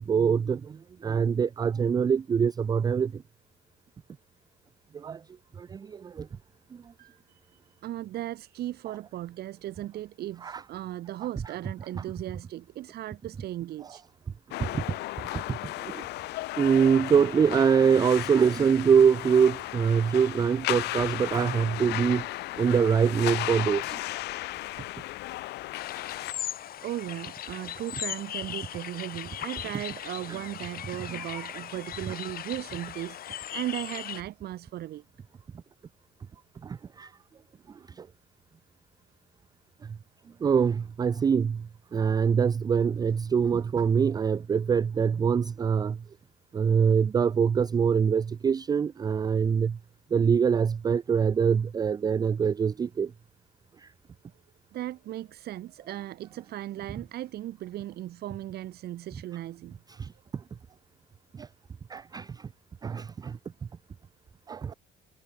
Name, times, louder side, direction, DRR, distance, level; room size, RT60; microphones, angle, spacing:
voice 1, 0.0-3.2 4.9-5.2 5.6-6.3 6.7-6.8 10.4-10.6 14.6-14.8 15.3-16.0 16.6-22.3 22.6-24.0 30.3-30.4 31.1-31.2 36.6-37.1 38.0-38.1 39.8-40.0 40.4-46.0 46.5-49.8 50.1-53.1 53.8-53.9 59.9-60.4 61.3-61.5 61.9-62.5 62.8-63.4 64.5-64.7, right 6 dB, 25° right, 0.3 m, -24 dB
voice 2, 7.0-14.0 26.3-26.4 26.8-35.0 54.7-59.8, right 14 dB, 70° right, 5.1 m, -37 dB
sound 1, 14.5-26.3, left 18 dB, 80° left, 0.9 m, -35 dB
fugler natt vaar, 25.8-34.2, left 11 dB, 60° left, 4.1 m, -38 dB
cardioid pair, 110°, 17 cm